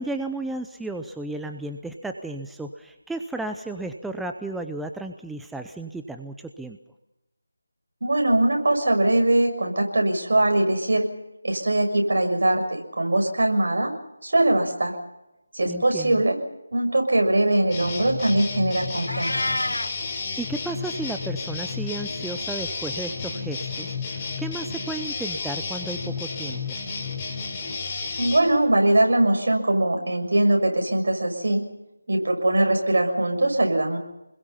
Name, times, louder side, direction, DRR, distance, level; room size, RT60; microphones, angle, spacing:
voice 1, 0.0-6.8 15.7-16.2 20.4-26.6, right 2 dB, ahead, 5 dB, 0.7 m, -33 dB
voice 2, 8.0-11.0 11.4-13.9 14.2-14.9 15.5-16.3 16.7-19.3 28.2-31.6 32.1-34.0, right 1 dB, 65° right, 3 dB, 6.7 m, -21 dB
sound 1, 17.7-28.4, left 4 dB, 20° left, 4.2 m, -32 dB
Meow, 19.1-19.9, left 1 dB, 90° left, 1.4 m, -27 dB
29.0 x 21.5 x 5.7 m, 0.94 s
figure-of-eight pair, 165°, 0 cm